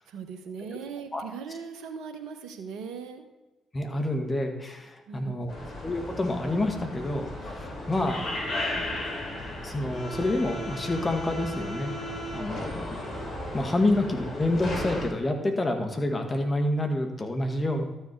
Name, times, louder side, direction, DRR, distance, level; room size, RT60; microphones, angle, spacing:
voice 1, 0.1-3.3 5.1-5.7, right 6 dB, 70° right, 7 dB, 1.1 m, -39 dB
voice 2, 3.7-5.5 5.8-8.2 9.6-11.9 12.3-12.8 13.5-17.8, left 1 dB, 30° left, 4 dB, 2.0 m, -28 dB
sound 1, 5.5-15.1, left 1 dB, 50° left, 4.0 m, -35 dB
12.5 x 7.0 x 4.7 m, 1.1 s
hypercardioid pair, 45°, 0 cm